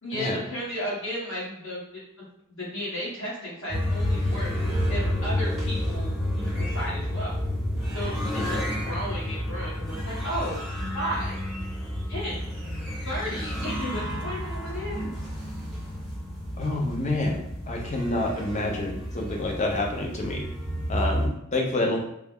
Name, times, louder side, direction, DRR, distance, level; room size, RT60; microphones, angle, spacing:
voice 1, 0.0-2.0 2.6-4.5 4.9-7.4 7.9-10.7 10.9-11.4 12.1-12.5 13.0-15.1, equal, 60° left, -7 dB, 1.4 m, -34 dB
hi runs, 3.7-21.3, equal, ahead, 0.8 m, -30 dB
voice 2, 16.6-20.4 20.9-22.0, left 2 dB, 30° left, 0 dB, 0.5 m, -28 dB
3.3 x 2.0 x 3.5 m, 0.77 s
head